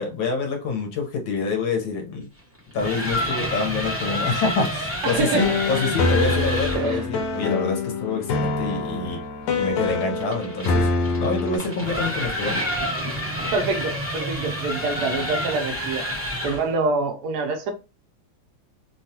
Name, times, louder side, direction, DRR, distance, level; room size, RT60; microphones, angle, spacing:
voice 1, 0.0-2.3 2.7-9.2 9.6-10.9 11.2-12.6, left 4 dB, 70° left, 1.5 m, -27 dB
sound 1, 2.6-6.9 9.5-16.7, equal, 10° right, 0.6 m, -29 dB
voice 2, 5.0-5.6 6.7-7.1 13.5-16.0 16.4-17.7, right 3 dB, 70° right, 1.0 m, -25 dB
sound 2, 5.1-11.6, left 3 dB, 85° left, 1.5 m, -25 dB
3.5 x 2.3 x 2.7 m
omnidirectional pair, 2.3 m